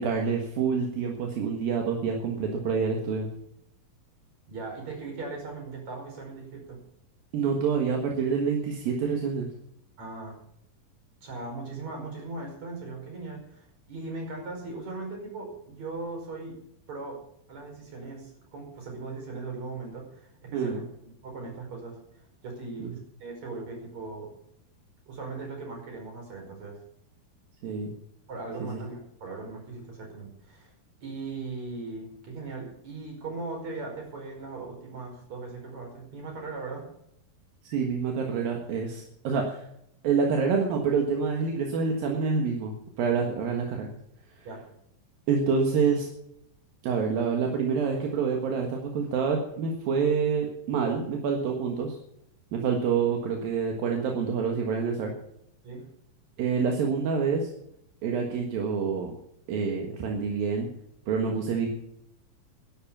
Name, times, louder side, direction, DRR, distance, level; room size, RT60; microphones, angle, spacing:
voice 1, 0.0-3.3 7.3-9.5 20.5-20.8 22.8-22.9 27.6-27.9 28.7-28.8 37.6-39.6 40.0-43.9 44.4-44.5 45.3-46.1 46.8-52.0 52.5-55.1 56.4-57.5 58.0-59.1 59.5-60.7 61.1-61.7, right 5 dB, 80° right, 1 dB, 3.4 m, -27 dB
voice 2, 4.5-6.8 10.0-10.4 11.2-16.6 16.9-17.2 17.5-20.9 21.2-22.0 22.4-22.9 23.2-24.3 25.1-26.8 28.3-30.7 31.0-36.9 44.4-44.6 55.6-55.8, right 3 dB, 50° right, 1 dB, 6.4 m, -38 dB
12.0 x 11.5 x 7.3 m, 0.75 s
omnidirectional pair, 4.1 m